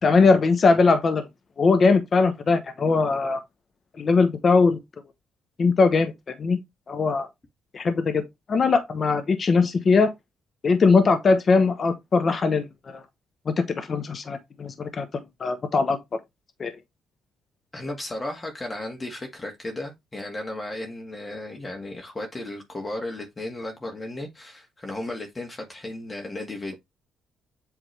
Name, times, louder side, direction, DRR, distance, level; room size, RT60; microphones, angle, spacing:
voice 1, 0.0-1.2 1.6-3.4 4.0-4.8 5.6-6.1 6.4-6.6 6.9-7.3 7.7-8.2 8.5-10.1 10.6-13.0 13.5-15.1 15.4-16.0 16.6-16.7, left 4 dB, 45° left, 1.0 m, -20 dB
voice 2, 17.7-26.8, left 1 dB, 25° left, 1.8 m, -35 dB
8.0 x 3.5 x 3.3 m
cardioid pair, 75°, 0 cm